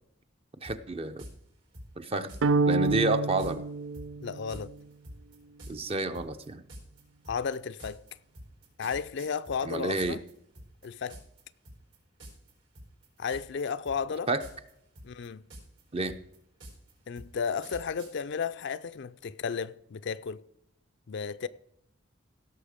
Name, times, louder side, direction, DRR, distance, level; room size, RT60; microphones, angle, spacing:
voice 1, 0.6-1.2 2.0-2.3 2.7-3.6 5.7-6.6 9.7-10.2 14.3-14.4 15.9-16.2, right 2 dB, 30° right, 0.6 m, -29 dB
sound 1, 0.6-0.8 1.2-1.3 1.7-2.4 2.8-3.0 3.4-3.5 3.9-10.3 10.6-11.4 11.7-12.0 12.2-12.5 12.8-13.6 13.9-14.7 15.0-18.1, equal, 70° right, 4.6 m, -46 dB
sound 2, 2.4-4.7, right 3 dB, 85° right, 0.4 m, -28 dB
voice 2, 4.2-4.7 7.3-8.0 8.8-10.2 10.8-11.2 13.2-14.3 15.0-15.4 17.1-20.4 21.1-21.5, left 6 dB, 65° left, 0.4 m, -33 dB
16.5 x 6.5 x 5.1 m
head